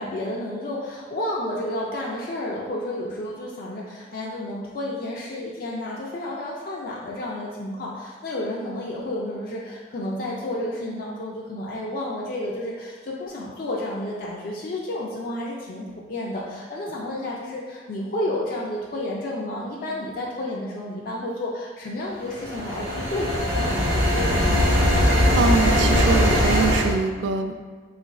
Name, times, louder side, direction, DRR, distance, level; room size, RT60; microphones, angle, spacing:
voice 1, 0.0-24.6, left 1 dB, 55° left, -4 dB, 0.4 m, -31 dB
sound 1, 22.3-26.9, equal, 55° right, 0.9 m, -20 dB
voice 2, 25.0-27.5, right 4 dB, 80° right, 6 dB, 0.3 m, -24 dB
3.0 x 2.4 x 4.0 m, 1.5 s
head